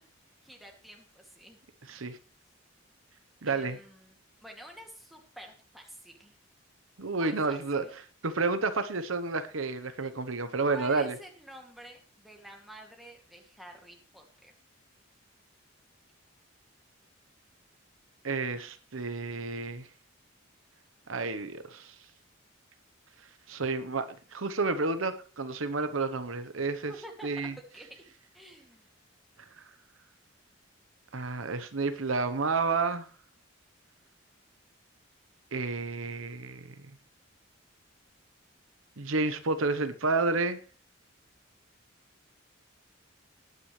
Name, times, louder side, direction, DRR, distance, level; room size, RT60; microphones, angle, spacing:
voice 1, 0.4-1.6 1.8-2.2 3.5-4.2 4.4-6.3 7.1-7.9 10.7-14.5 26.9-27.5 27.7-28.0 28.3-28.9, right 1 dB, ahead, 0 dB, 2.3 m, -49 dB
voice 2, 3.4-3.8 7.0-7.8 8.2-11.2 18.2-19.9 21.1-21.9 23.5-26.9 27.2-27.5 31.1-33.1 35.5-36.6 39.0-40.6, right 3 dB, 80° right, 10 dB, 1.0 m, -30 dB
19.0 x 9.5 x 3.2 m, 0.37 s
head